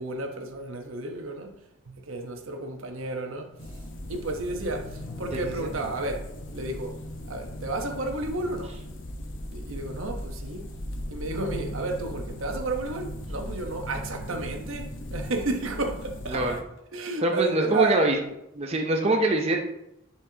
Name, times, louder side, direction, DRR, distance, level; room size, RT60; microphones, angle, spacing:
voice 1, 0.0-1.5 1.9-3.6 4.1-7.0 7.3-8.7 9.5-10.7 11.1-16.4 16.9-18.0, right 2 dB, 80° right, 1.1 m, -32 dB
sound 1, 3.6-16.6, left 1 dB, 65° left, 1.0 m, -38 dB
voice 2, 5.3-5.7 16.3-16.6 17.2-18.2 18.5-19.6, right 2 dB, 30° right, 0.6 m, -24 dB
10.5 x 4.5 x 2.9 m
head